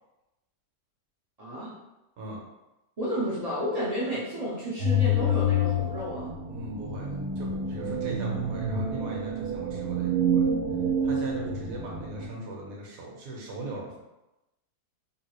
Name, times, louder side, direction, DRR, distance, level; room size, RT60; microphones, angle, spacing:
voice 1, 1.4-1.7 3.0-6.3, equal, 50° right, -9 dB, 0.4 m, -31 dB
sound 1, 4.8-12.3, equal, 85° right, 1.2 m, -28 dB
voice 2, 6.5-7.1 7.4-10.4 11.0-14.0, right 2 dB, 65° right, -2 dB, 1.2 m, -39 dB
3.7 x 2.3 x 2.9 m, 0.96 s
omnidirectional pair, 1.7 m